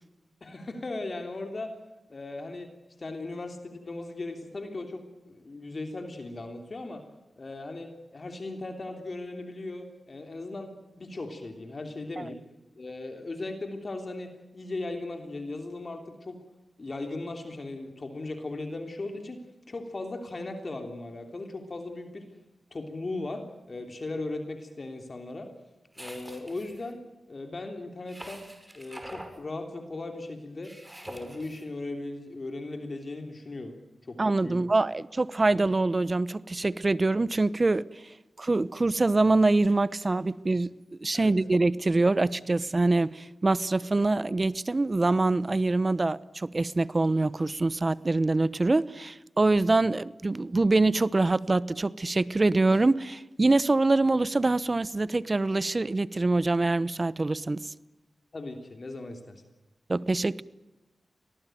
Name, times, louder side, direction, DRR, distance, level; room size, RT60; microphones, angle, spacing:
voice 1, 0.4-1.7 2.1-2.7 3.0-7.0 7.4-10.7 11.0-12.4 12.8-16.4 16.8-19.4 19.7-22.3 22.7-25.5 26.0-27.0 27.3-28.5 28.7-30.7 31.0-33.8 34.1-34.6 41.1-41.3 58.3-59.4, left 2 dB, 45° left, 3.4 m, -37 dB
sound 1, 25.9-26.9 28.1-29.4 30.6-31.6, right 1 dB, 15° right, 5.7 m, -45 dB
voice 2, 34.2-37.8 38.4-40.7 41.0-57.7 59.9-60.4, right 2 dB, 35° right, 0.9 m, -24 dB
24.5 x 18.5 x 9.3 m
cardioid pair, 55°, 0 cm